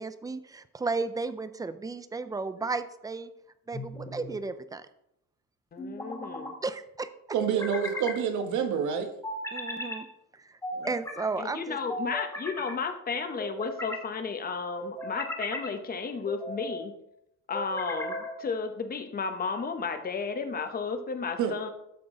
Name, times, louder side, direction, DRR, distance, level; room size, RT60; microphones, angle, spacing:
voice 1, 0.0-3.3 3.7-4.9 6.6-7.1 9.5-10.1 10.3-10.6 10.9-11.8, right 3 dB, 10° right, 12 dB, 0.4 m, -34 dB
sound 1, 3.7-4.4 5.8-6.5 7.4-8.2 9.2-10.0 10.6-11.3 11.9-12.7 13.4-14.1 14.8-15.7 16.3-16.8 17.5-18.4, left 1 dB, 10° left, 1.9 m, -37 dB
voice 2, 5.7-6.5 11.4-16.9 17.5-21.7, left 5 dB, 30° left, 8 dB, 0.9 m, -33 dB
voice 3, 7.3-9.1 10.7-10.9 21.4-21.5, right 7 dB, 65° right, 6 dB, 1.4 m, -28 dB
13.0 x 6.0 x 3.8 m, 0.81 s
cardioid pair, 155°, 32 cm